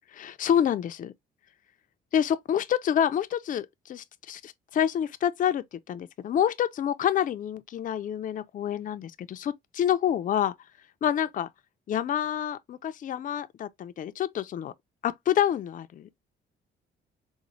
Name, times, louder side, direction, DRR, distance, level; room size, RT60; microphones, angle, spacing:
voice 1, 0.1-1.1 2.1-10.5 11.0-11.5 11.9-14.7 15.0-16.1, left 10 dB, 40° left, 0.4 m, -27 dB
3.9 x 2.1 x 3.0 m
cardioid pair, 90°, 20 cm